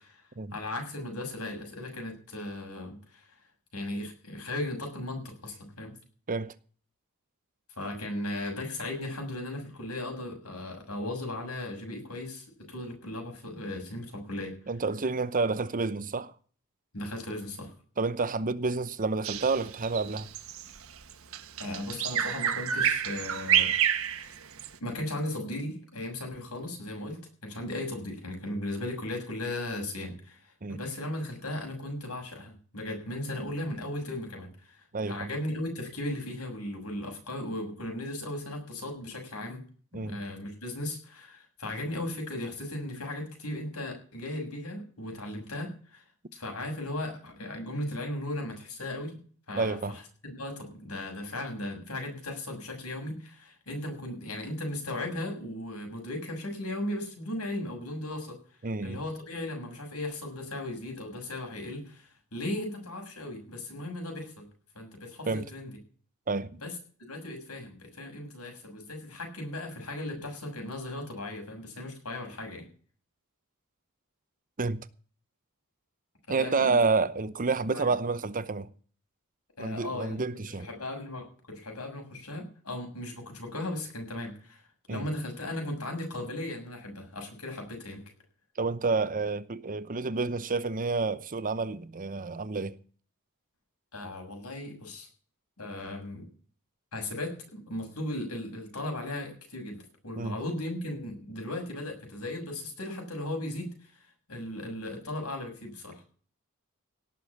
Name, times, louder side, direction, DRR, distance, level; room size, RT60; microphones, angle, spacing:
voice 1, 0.5-3.3 3.7-5.9 7.8-14.5 16.9-17.7 21.6-23.7 24.0-24.3 24.8-30.4 30.7-39.6 39.9-46.0 46.3-58.4 58.8-64.5 64.7-65.8 66.6-66.7 67.1-72.6 76.3-76.8 77.7-77.9 79.6-84.6 84.9-88.0 93.9-95.1 95.6-96.3 96.9-104.0 104.3-106.0, left 1 dB, 80° left, 6.7 m, -37 dB
voice 2, 14.7-16.3 18.0-20.3 30.6-30.8 34.9-35.2 39.9-40.2 49.6-50.0 58.6-59.0 65.3-65.5 66.3-66.6 74.6-74.8 76.3-78.7 79.6-80.7 84.9-85.1 88.6-92.7 100.2-100.4, right 4 dB, 40° right, 0.8 m, -29 dB
Bird vocalization bird call bird song, 19.2-24.7, right 9 dB, 65° right, 1.3 m, -28 dB
18.0 x 7.0 x 7.1 m
head